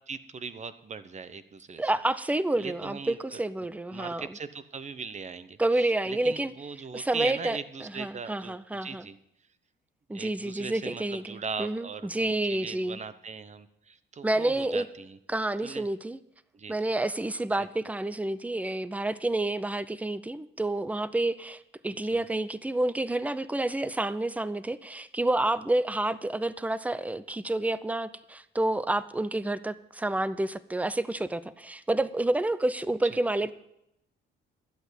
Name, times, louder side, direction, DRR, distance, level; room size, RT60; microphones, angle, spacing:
voice 1, 0.1-1.8 2.6-3.4 3.9-8.5 8.8-9.2 10.1-15.2 15.6-15.8 16.5-16.7 17.6-17.7 22.1-22.2 33.0-33.2, right 5 dB, 35° right, 13 dB, 0.9 m, -39 dB
voice 2, 1.8-4.3 5.6-6.5 6.9-9.1 10.1-13.0 14.2-14.9 15.3-16.2 16.7-33.5, right 2 dB, 5° right, 16 dB, 0.6 m, -29 dB
11.5 x 8.1 x 8.2 m, 0.82 s
cardioid pair, 90°, 20 cm